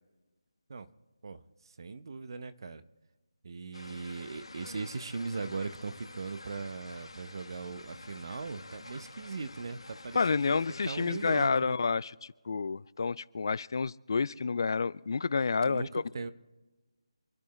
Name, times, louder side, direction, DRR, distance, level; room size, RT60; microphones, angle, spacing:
voice 1, 1.8-2.8 3.4-10.6 10.9-11.8 15.6-16.3, right 4 dB, 50° right, 12 dB, 0.9 m, -39 dB
sound 1, 3.7-11.5, left 2 dB, 85° left, 1.8 m, -49 dB
voice 2, 10.1-16.0, left 4 dB, 45° left, 20 dB, 0.3 m, -29 dB
27.5 x 10.5 x 3.1 m, 1.2 s
figure-of-eight pair, 165°, 3 cm